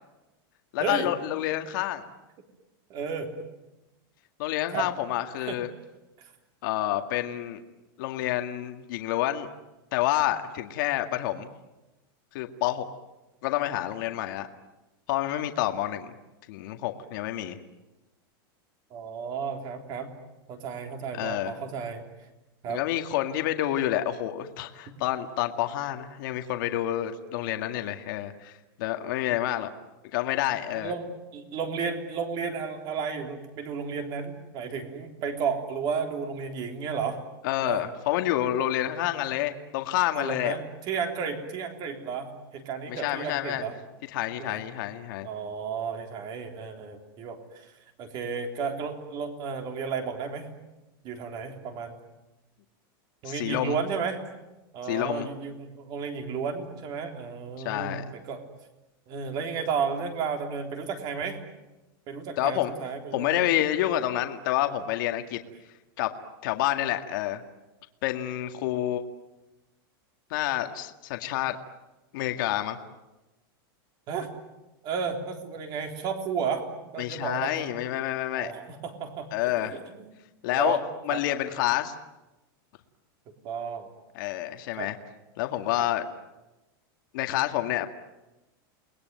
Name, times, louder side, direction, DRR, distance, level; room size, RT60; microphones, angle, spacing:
voice 1, 0.7-2.0 4.4-5.7 6.6-7.6 8.0-9.5 9.9-11.5 12.3-12.9 13.4-14.5 15.1-16.1 16.5-17.6 21.1-21.6 22.7-28.5 28.8-29.7 30.1-30.9 37.4-40.5 42.9-43.6 44.1-45.3 53.2-53.8 54.9-55.3 57.6-58.0 62.4-62.7 63.1-65.4 66.0-66.1 66.4-67.4 68.0-69.0 70.3-71.6 72.1-72.8 77.0-78.5 79.3-79.8 80.4-80.8 81.1-81.9 84.1-85.0 85.4-86.1 87.1-87.9, left 13 dB, 55° left, 6 dB, 2.0 m, -28 dB
voice 2, 2.9-3.3 4.7-4.9 5.4-5.6 18.9-20.1 20.5-22.0 22.6-22.8 30.7-37.2 37.6-37.8 39.0-39.1 40.1-43.8 44.4-44.6 45.2-47.7 48.0-50.5 51.0-52.0 53.2-54.2 54.7-58.0 58.3-58.4 59.1-61.4 62.1-63.5 68.7-68.8 74.1-74.3 74.8-76.7 76.9-77.7 78.3-80.1 80.5-80.8 81.1-81.2 83.4-83.9 84.7-84.9 85.7-85.9, right 6 dB, 35° right, 5 dB, 3.6 m, -33 dB
29.5 x 20.5 x 9.4 m, 1.0 s
supercardioid pair, 165°, 12 cm